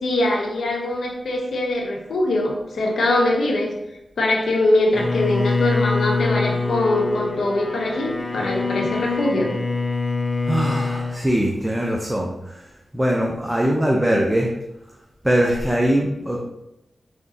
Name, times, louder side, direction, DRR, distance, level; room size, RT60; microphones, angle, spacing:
voice 1, 0.0-3.7 4.2-9.5, left 1 dB, 80° left, 0 dB, 0.7 m, -22 dB
Bowed string instrument, 4.9-11.2, left 3 dB, 40° left, 0.6 m, -24 dB
voice 2, 10.5-12.7 12.9-14.5 15.2-16.4, right 1 dB, 15° right, -1 dB, 0.6 m, -21 dB
3.6 x 3.5 x 2.7 m, 0.88 s
cardioid pair, 40°, 0 cm